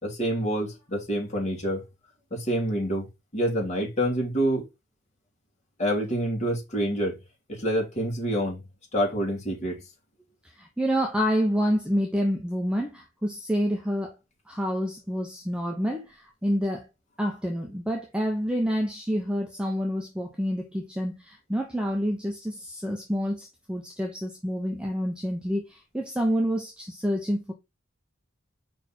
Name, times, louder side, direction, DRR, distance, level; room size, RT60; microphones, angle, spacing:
voice 1, 0.0-1.8 2.3-4.7 5.8-7.2 7.5-8.6 8.9-9.8, equal, 35° left, 3.1 m, -27 dB
voice 2, 10.6-14.1 14.5-16.9 17.2-27.5, equal, 5° right, 1.0 m, -28 dB
5.4 x 4.4 x 4.4 m
head